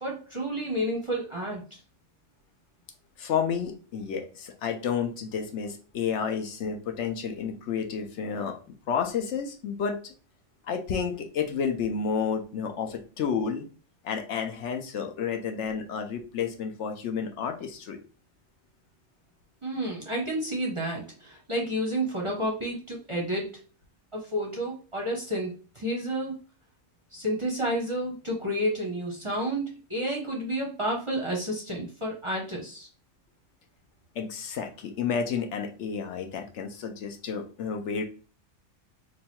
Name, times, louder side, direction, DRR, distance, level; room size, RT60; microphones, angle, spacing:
voice 1, 0.0-1.8 19.6-23.5 24.1-26.4 27.1-32.9, equal, 30° right, -2 dB, 0.6 m, -30 dB
voice 2, 3.2-8.6 8.9-10.1 10.7-13.7 14.0-18.0 34.2-38.0, left 6 dB, 70° left, 5 dB, 0.9 m, -31 dB
3.1 x 2.3 x 4.3 m, 0.37 s
omnidirectional pair, 1.4 m